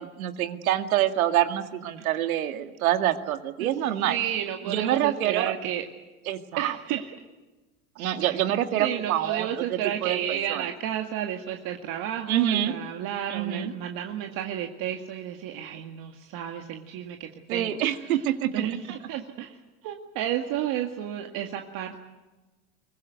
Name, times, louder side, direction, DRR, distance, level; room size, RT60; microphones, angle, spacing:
voice 1, 0.0-4.2 4.7-5.5 6.3-6.8 8.0-10.2 10.5-10.6 12.3-12.7 13.3-13.7 17.5-18.5, right 12 dB, 85° right, 8 dB, 2.2 m, -26 dB
voice 2, 4.1-5.8 6.6-7.2 8.2-8.4 8.8-22.0, right 10 dB, 55° right, 3 dB, 2.1 m, -32 dB
23.0 x 20.5 x 9.4 m, 1.2 s
supercardioid pair, 120°, 41 cm